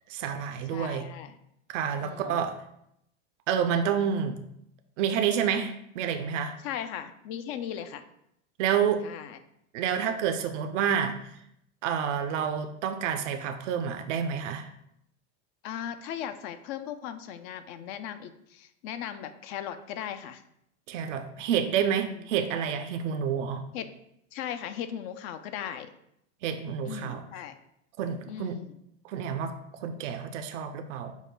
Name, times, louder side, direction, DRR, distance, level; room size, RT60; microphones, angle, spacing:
voice 1, 0.1-1.1 1.7-2.6 3.5-4.4 5.0-6.6 8.6-9.0 9.7-11.2 11.8-14.7 20.9-23.6 26.4-27.2 28.0-28.6 29.0-31.1, right 8 dB, 75° right, 7 dB, 0.5 m, -29 dB
voice 2, 0.7-1.4 2.0-2.4 6.6-8.0 9.0-9.4 15.6-20.4 22.1-22.2 23.7-23.9 24.3-25.9 26.8-27.6 28.3-28.7, left 9 dB, 55° left, 11 dB, 0.5 m, -38 dB
5.4 x 2.1 x 4.5 m, 0.77 s
hypercardioid pair, 95°, 37 cm